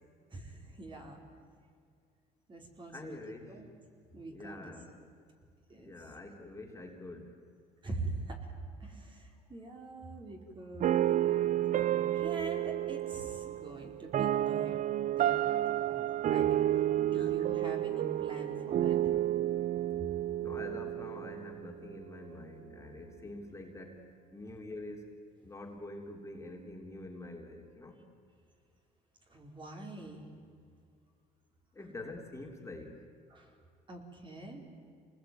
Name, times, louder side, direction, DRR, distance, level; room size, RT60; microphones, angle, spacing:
voice 1, 0.3-1.2 2.5-3.7 4.1-4.7 5.7-5.9 7.8-8.5 8.8-14.8 15.1-19.0 29.3-30.2 33.3-33.6 33.9-34.6, right 2 dB, 30° right, 2 dB, 4.7 m, -44 dB
voice 2, 2.9-3.5 4.3-4.9 5.8-7.4 17.1-17.4 20.4-25.1 25.4-28.0 31.7-33.0, left 2 dB, 15° left, 1 dB, 3.4 m, -46 dB
sound 1, 10.8-21.9, right 12 dB, 50° right, 0.6 m, -31 dB
27.5 x 20.0 x 9.4 m, 2.2 s
cardioid pair, 110°, 17 cm